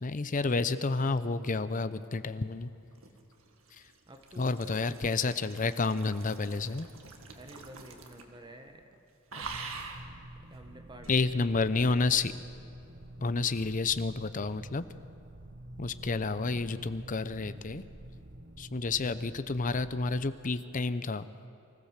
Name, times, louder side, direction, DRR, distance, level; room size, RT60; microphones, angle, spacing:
voice 1, 0.0-2.7 4.4-6.9 11.1-12.3 13.2-14.8 15.8-17.8 18.6-21.3, left 3 dB, 40° left, 13 dB, 0.6 m, -30 dB
sound 1, 2.7-8.4 8.7-8.9 9.3-10.1 11.0-11.2, right 4 dB, 75° right, 1.9 m, -45 dB
voice 2, 4.1-4.7 7.3-8.8 9.3-9.5 10.5-12.0, right 1 dB, 20° right, 5 dB, 1.2 m, -50 dB
sound 2, 9.4-20.2, right 1 dB, 60° right, 1.2 m, -48 dB
24.5 x 15.0 x 7.4 m, 2.7 s
head